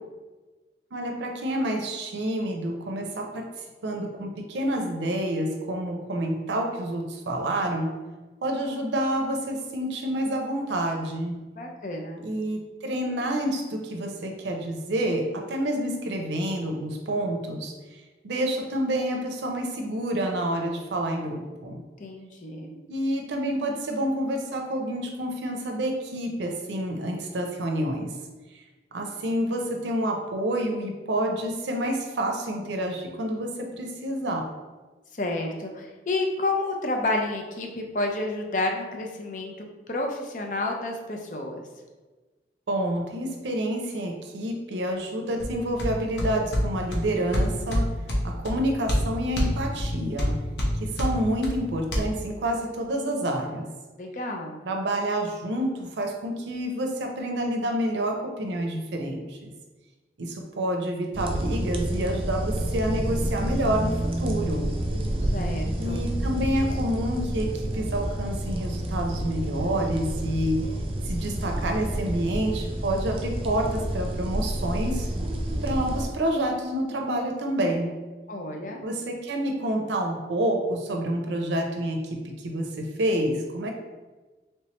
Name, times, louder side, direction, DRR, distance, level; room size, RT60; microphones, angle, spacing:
voice 1, 0.9-3.5 3.8-7.9 8.4-11.4 12.2-21.8 22.9-28.1 28.9-34.5 42.7-47.9 48.2-50.4 50.8-53.7 54.6-59.5 60.2-64.7 65.8-70.6 71.1-75.1 75.6-77.9 78.8-83.7, right 1 dB, 90° right, 3 dB, 0.5 m, -28 dB
voice 2, 11.6-12.2 22.0-22.7 35.1-41.6 54.0-54.6 65.3-66.0 78.3-78.8, left 2 dB, 45° left, 2 dB, 0.5 m, -30 dB
sound 1, 45.4-52.0, equal, 85° left, 0.7 m, -28 dB
sound 2, 61.1-76.1, right 1 dB, 30° right, 0.4 m, -29 dB
3.2 x 3.1 x 2.9 m, 1.2 s
head